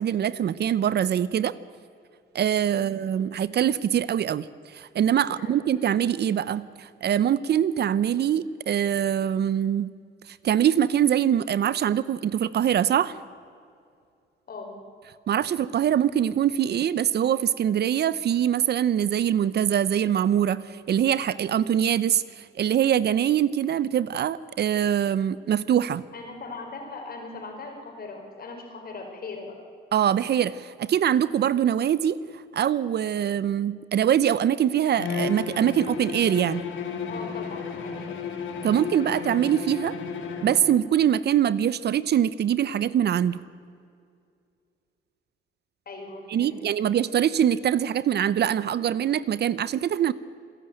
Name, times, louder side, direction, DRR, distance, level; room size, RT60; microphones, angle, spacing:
voice 1, 0.0-1.5 2.3-4.5 4.7-9.9 10.3-13.1 15.3-22.2 22.6-26.1 29.9-32.2 32.5-36.6 38.6-40.0 40.4-43.4 46.3-50.1, right 9 dB, 55° right, 18 dB, 0.7 m, -23 dB
voice 2, 2.7-3.0 5.2-5.6 14.5-14.8 26.1-29.7 37.1-38.2 45.9-46.6, left 3 dB, 50° left, 3 dB, 5.2 m, -40 dB
Bowed string instrument, 34.9-40.8, left 6 dB, 75° left, 2.7 m, -33 dB
26.5 x 11.0 x 9.1 m, 2.4 s
cardioid pair, 90°, 20 cm